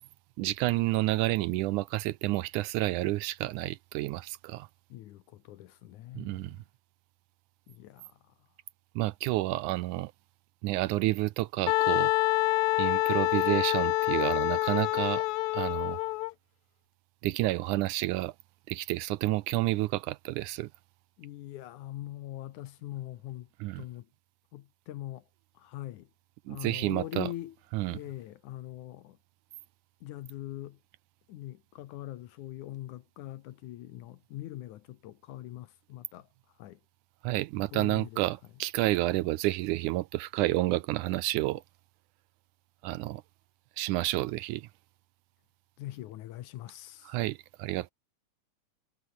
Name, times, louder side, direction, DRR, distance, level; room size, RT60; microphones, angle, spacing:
voice 1, 0.4-4.7 6.2-6.6 9.0-10.1 10.6-12.1 12.8-15.2 15.5-16.0 17.2-18.3 18.7-20.7 23.6-23.8 26.5-27.3 27.7-28.0 37.2-41.6 42.8-43.2 43.8-44.7 47.1-47.9, right 18 dB, 80° right, 1.9 m, -30 dB
voice 2, 4.9-6.6 7.7-8.2 21.2-23.5 23.8-24.1 24.5-25.2 25.6-26.1 26.5-27.6 27.9-29.2 30.0-30.8 31.3-36.3 36.6-36.8 37.7-38.2 45.8-47.1, left 14 dB, 70° left, 2.3 m, -42 dB
Wind instrument woodwind instrument, 11.7-16.3, left 21 dB, 90° left, 1.6 m, -27 dB
omnidirectional pair, 3.8 m